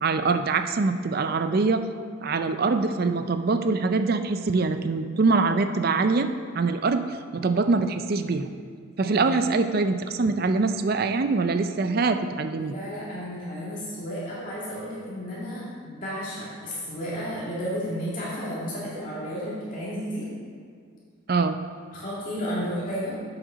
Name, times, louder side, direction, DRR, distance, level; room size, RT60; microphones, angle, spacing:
voice 1, 0.0-1.8 2.2-6.3 6.5-7.0 7.3-8.5 9.0-12.8 21.3-21.6, right 3 dB, 45° right, 8 dB, 0.4 m, -24 dB
voice 2, 9.0-9.4 12.5-20.3 21.9-23.3, equal, 40° left, -8 dB, 2.2 m, -33 dB
8.0 x 7.4 x 5.0 m, 2.1 s
head